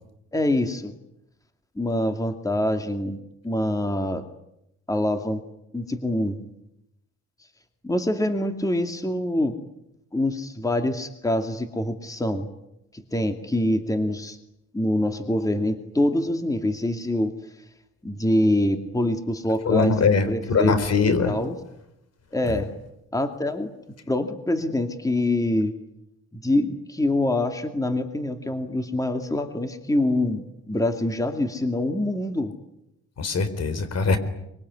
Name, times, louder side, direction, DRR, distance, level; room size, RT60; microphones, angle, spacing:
voice 1, 0.3-0.9 1.8-3.2 3.4-4.2 4.9-5.4 5.7-6.4 7.8-9.6 10.1-12.5 12.9-14.4 14.7-17.3 18.0-19.9 20.3-20.7 21.2-21.6 22.3-22.7 23.1-23.7 24.1-25.7 26.3-32.5, left 1 dB, 10° left, 6 dB, 2.5 m, -25 dB
voice 2, 19.6-21.4 22.5-22.6 33.2-34.2, left 4 dB, 55° left, 12 dB, 4.3 m, -22 dB
24.0 x 23.0 x 9.7 m, 0.83 s
cardioid pair, 90°, 30 cm